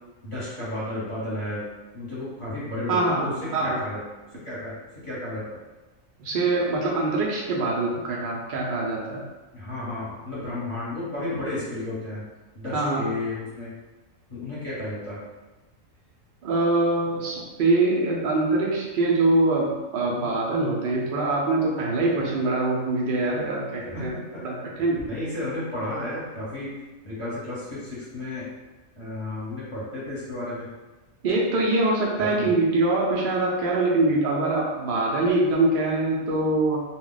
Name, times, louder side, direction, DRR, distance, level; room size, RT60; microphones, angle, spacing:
voice 1, 0.2-1.6 1.9-4.0 4.4-4.7 5.0-5.4 9.5-12.2 12.5-13.7 14.3-15.2 23.8-24.4 25.0-26.7 27.0-28.5 29.0-30.7 32.2-32.5, left 2 dB, 25° left, -10 dB, 0.8 m, -32 dB
voice 2, 2.9-3.8 6.2-9.2 12.7-13.1 16.4-24.1 24.4-25.1 31.2-36.8, right 2 dB, 80° right, -3 dB, 0.4 m, -24 dB
2.2 x 2.2 x 3.8 m, 1.1 s
omnidirectional pair, 1.5 m